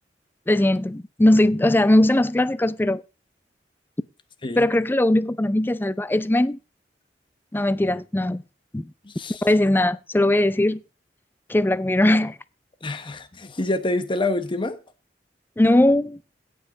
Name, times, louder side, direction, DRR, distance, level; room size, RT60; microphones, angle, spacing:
voice 1, 0.5-3.0 4.6-6.6 7.5-8.4 8.7-8.9 9.4-10.8 11.5-12.4 15.6-16.2, left 1 dB, 10° left, 0.4 m, -19 dB
voice 2, 9.0-9.4 12.8-14.8, left 2 dB, 30° left, 1.0 m, -27 dB
16.5 x 5.4 x 3.8 m
head